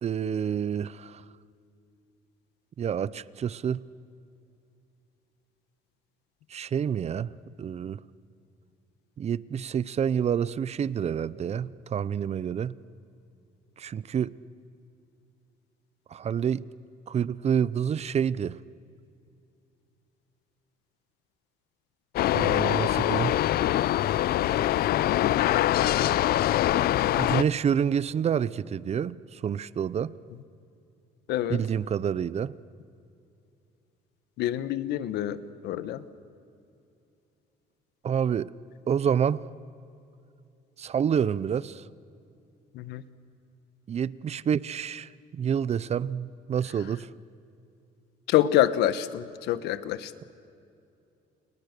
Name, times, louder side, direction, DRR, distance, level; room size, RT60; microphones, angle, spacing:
voice 1, 0.0-1.2 2.8-3.8 6.5-7.3 7.6-8.0 9.2-12.8 13.8-14.3 16.1-16.6 17.1-18.6 22.3-23.4 27.2-30.1 31.5-32.5 38.0-38.5 38.9-39.5 40.8-41.8 43.9-47.1, right 8 dB, 40° right, 0.7 m, -28 dB
sound 1, 22.2-27.4, left 13 dB, 65° left, 0.6 m, -24 dB
voice 2, 31.3-31.6 34.4-36.0 42.7-43.0 48.3-50.1, left 12 dB, 80° left, 1.3 m, -26 dB
29.5 x 29.5 x 6.8 m
cardioid pair, 110°, 17 cm